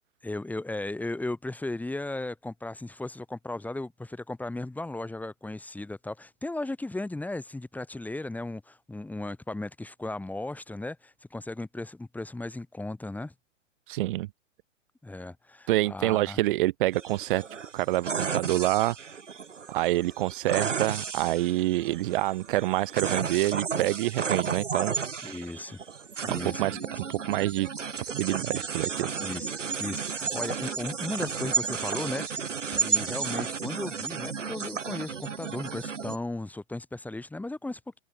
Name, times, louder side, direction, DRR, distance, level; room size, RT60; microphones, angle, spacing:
voice 1, 0.2-13.3 15.0-16.4 25.2-25.8 26.2-26.9 29.2-38.0, left 2 dB, 5° left, 3.4 m, -36 dB
voice 2, 13.9-14.3 15.7-17.4 17.7-19.0 19.7-24.9 26.3-26.8 27.3-27.7 28.1-29.1, right 17 dB, 45° right, 2.4 m, -27 dB
sound 1, 16.9-36.2, right 6 dB, 75° right, 2.9 m, -33 dB
open air
figure-of-eight pair, 110°, 37 cm